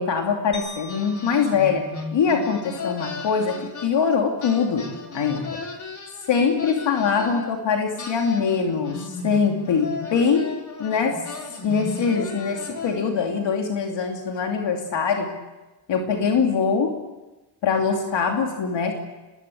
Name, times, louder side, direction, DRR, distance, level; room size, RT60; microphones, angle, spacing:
voice 1, 0.0-5.6 6.3-11.3 11.6-15.4 15.9-17.0 17.6-18.9, left 6 dB, 70° left, 2 dB, 2.8 m, -23 dB
sound 1, 0.5-2.9, left 1 dB, 25° left, 7.9 m, -43 dB
sound 2, 0.9-4.1 4.4-7.5 8.0-13.2, left 3 dB, 40° left, 3.8 m, -36 dB
26.5 x 21.0 x 8.5 m, 1.1 s
cardioid pair, 130°, 45 cm